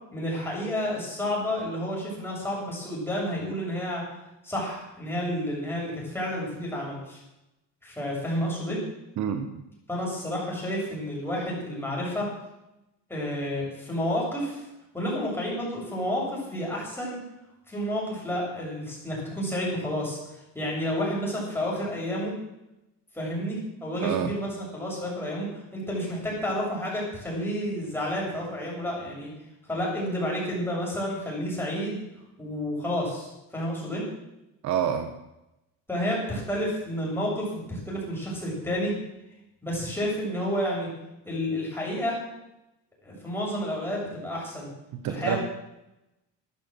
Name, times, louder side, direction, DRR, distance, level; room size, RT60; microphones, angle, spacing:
voice 1, 0.1-4.0 4.4-7.2 7.8-8.8 9.9-12.3 13.1-14.6 14.9-17.2 17.7-20.2 20.5-22.3 23.1-25.5 25.7-29.3 29.7-32.0 32.4-34.0 35.9-38.9 39.6-40.9 41.3-42.2 43.0-44.7 45.1-45.4, equal, 5° left, -4 dB, 7.7 m, -30 dB
voice 2, 9.2-9.5 24.0-24.3 34.6-35.1 45.0-45.4, right 9 dB, 60° right, 7 dB, 1.3 m, -27 dB
13.0 x 11.5 x 7.7 m, 0.91 s
cardioid pair, 130°, 33 cm